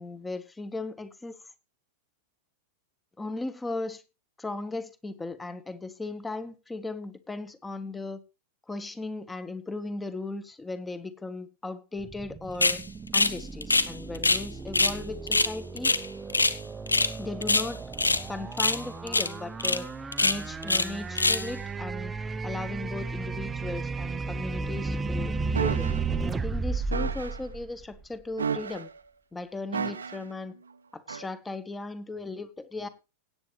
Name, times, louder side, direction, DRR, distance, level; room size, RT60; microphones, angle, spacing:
voice 1, 0.0-1.4 3.2-4.0 4.4-8.2 8.7-12.8 13.1-15.9 17.2-17.8 18.3-19.9 20.2-22.1 22.4-28.9 29.3-30.5 30.9-32.9, left 2 dB, 10° left, 1.3 m, -37 dB
sound 1, 12.0-28.2, right 4 dB, 15° right, 0.8 m, -34 dB
sound 2, 12.6-12.8 13.1-13.4 13.6-14.4 14.7-15.0 15.3-16.6 16.9-17.1 17.4-18.2 18.6-18.8 19.1-19.3 19.6-19.8 20.1-20.9 21.2-21.5, left 3 dB, 80° left, 0.7 m, -24 dB
sound 3, 25.5-26.0 26.9-27.4 28.4-29.0 29.7-30.3 31.1-31.3, right 6 dB, 75° right, 0.8 m, -32 dB
17.0 x 9.0 x 3.3 m
figure-of-eight pair, 90°, 0 cm